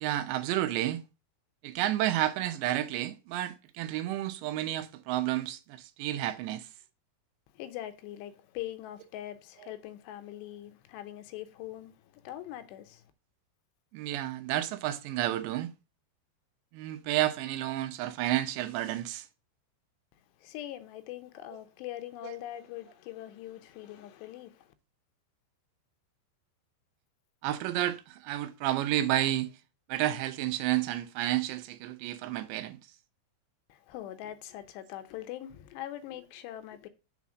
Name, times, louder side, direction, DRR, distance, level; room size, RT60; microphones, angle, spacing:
voice 1, 0.0-1.0 1.6-6.6 13.9-15.7 16.7-19.3 22.2-22.3 27.4-29.5 29.9-32.8, right 13 dB, 85° right, 3.0 m, -31 dB
voice 2, 7.5-13.1 20.4-24.7 33.7-36.9, left 13 dB, 80° left, 2.8 m, -42 dB
7.2 x 4.2 x 6.1 m
omnidirectional pair, 5.0 m